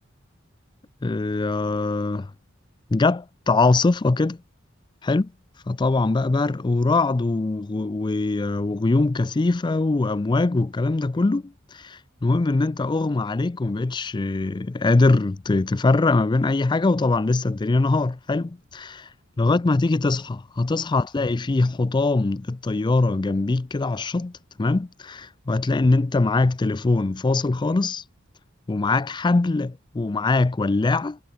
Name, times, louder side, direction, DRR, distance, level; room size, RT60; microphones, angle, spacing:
voice 1, 1.0-2.3 2.9-4.4 5.0-5.3 5.7-19.0 19.4-24.3 24.6-28.0 28.7-31.2, left 3 dB, 20° left, 0.4 m, -22 dB
head